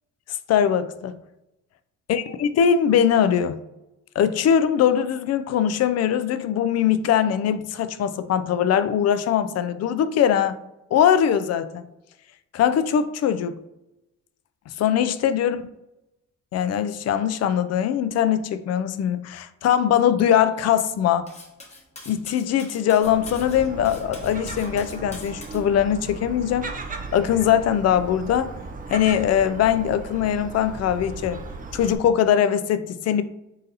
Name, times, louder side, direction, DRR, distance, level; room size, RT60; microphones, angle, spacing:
voice 1, 0.5-1.2 2.1-3.6 4.2-10.6 10.9-11.8 12.5-13.6 14.7-15.6 16.5-21.3 22.1-26.7 27.1-28.5 28.9-31.4 31.7-33.2, left 9 dB, 55° left, 0.4 m, -21 dB
Cutlery silverware, 21.3-25.6, left 2 dB, 20° left, 1.0 m, -44 dB
Gull seagull, 23.0-32.0, right 3 dB, 30° right, 0.5 m, -36 dB
3.9 x 3.9 x 2.7 m
cardioid pair, 90°, 30 cm